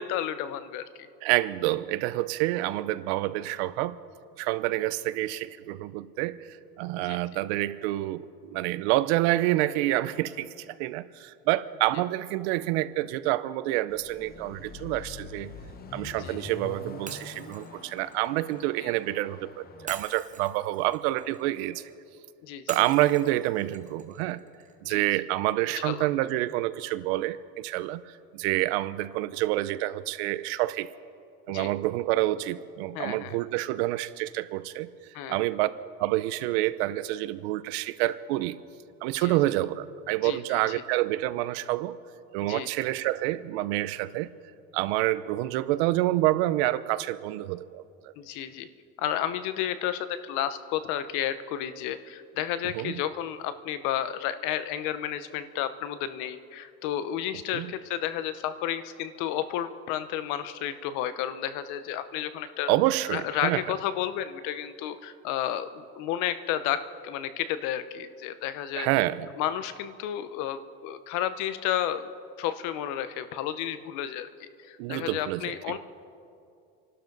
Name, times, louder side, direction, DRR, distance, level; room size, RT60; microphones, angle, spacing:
voice 1, 0.0-1.1 7.0-7.4 16.2-16.4 18.8-18.9 22.4-22.6 24.8-25.0 25.8-26.1 31.5-31.7 32.9-33.4 35.1-35.4 39.2-39.4 40.2-40.8 42.4-42.7 48.2-48.7 49.0-62.7 63.1-68.9 69.4-72.1 72.4-75.8, left 11 dB, 70° left, 12 dB, 1.0 m, -32 dB
voice 2, 1.2-4.0 4.4-6.5 6.8-15.5 15.9-21.8 22.7-24.4 24.8-30.9 31.5-34.9 35.3-35.7 36.0-38.6 39.0-42.0 42.3-44.3 44.7-47.8 52.7-53.0 57.5-57.7 62.7-63.6 68.7-69.3 74.8-75.8, right 16 dB, 85° right, 15 dB, 0.7 m, -28 dB
Car passing by / Accelerating revving vroom, 13.9-19.9, left 5 dB, 30° left, 1.3 m, -44 dB
Shatter, 17.1-19.1 19.9-22.0 22.7-24.8, right 6 dB, 25° right, 1.1 m, -45 dB
29.5 x 12.0 x 4.0 m, 2.5 s
cardioid pair, 130°, 32 cm